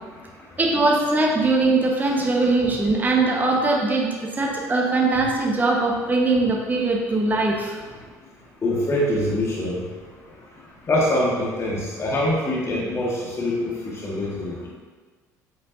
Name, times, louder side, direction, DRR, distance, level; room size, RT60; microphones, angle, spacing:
voice 1, 0.6-7.7, right 3 dB, 20° right, -1 dB, 1.2 m, -21 dB
voice 2, 8.6-9.8 10.9-13.7 14.0-14.7, left 1 dB, 30° left, -4 dB, 1.6 m, -24 dB
8.2 x 8.2 x 2.7 m, 1.4 s
figure-of-eight pair, 55°, 9 cm